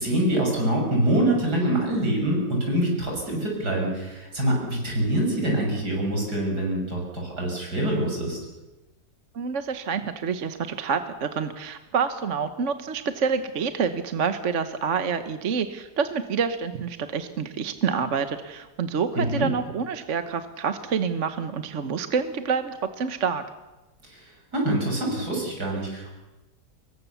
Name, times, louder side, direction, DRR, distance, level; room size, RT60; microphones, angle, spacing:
voice 1, 0.0-8.4 19.2-19.5 24.0-26.1, right 1 dB, 70° right, -1 dB, 7.4 m, -25 dB
voice 2, 9.3-23.4, right 6 dB, 50° right, 9 dB, 1.3 m, -27 dB
25.5 x 22.5 x 7.0 m, 1.1 s
omnidirectional pair, 1.8 m